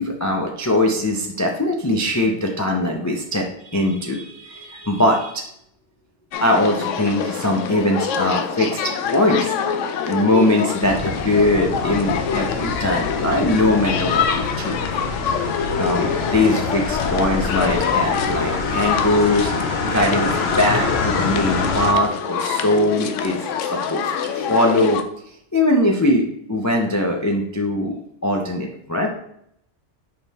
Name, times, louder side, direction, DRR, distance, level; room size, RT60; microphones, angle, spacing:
voice 1, 0.0-5.4 6.4-9.5 10.0-14.8 15.8-19.5 19.8-25.0 25.5-29.1, left 1 dB, 20° left, 1 dB, 0.4 m, -21 dB
sound 1, 6.3-25.0, left 7 dB, 80° left, 0.9 m, -25 dB
sound 2, 10.8-21.9, left 3 dB, 60° left, 1.1 m, -26 dB
5.5 x 4.7 x 4.1 m, 0.72 s
omnidirectional pair, 1.3 m